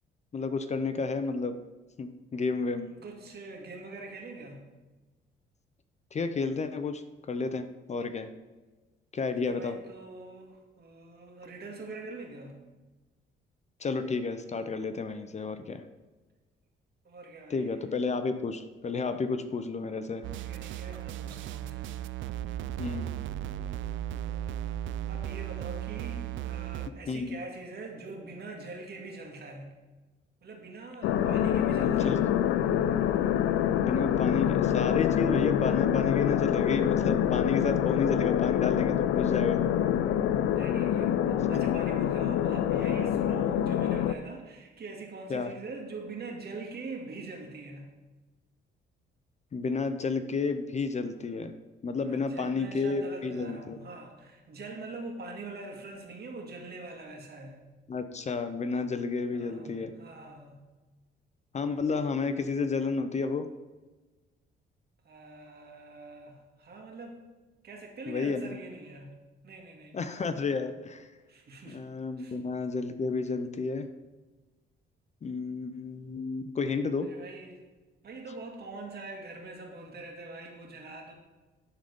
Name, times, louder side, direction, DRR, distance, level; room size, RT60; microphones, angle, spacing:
voice 1, 0.3-1.6 2.0-2.9 6.1-8.3 9.1-9.7 13.8-15.8 17.5-20.2 22.8-23.1 27.1-27.4 31.2-31.3 31.8-32.2 33.7-39.7 45.3-45.5 49.5-51.5 51.8-53.8 57.9-59.9 61.5-63.5 68.1-68.5 69.9-71.1 71.7-73.9 75.2-77.1, left 4 dB, 35° left, 10 dB, 0.6 m, -31 dB
voice 2, 2.5-4.6 9.4-12.5 17.0-17.7 20.4-22.0 24.3-24.8 25.1-29.7 30.4-32.3 40.5-47.9 52.0-57.6 59.3-60.6 65.0-67.2 67.6-69.1 69.4-70.0 71.3-71.8 72.2-72.4 77.0-77.6 78.0-81.1, right 3 dB, 55° right, 1 dB, 1.9 m, -43 dB
sound 1, 20.2-26.9, right 12 dB, 75° right, 0.4 m, -36 dB
sound 2, 31.0-44.1, left 10 dB, 90° left, 0.4 m, -26 dB
11.0 x 3.9 x 5.2 m, 1.2 s
cardioid pair, 90°, 20 cm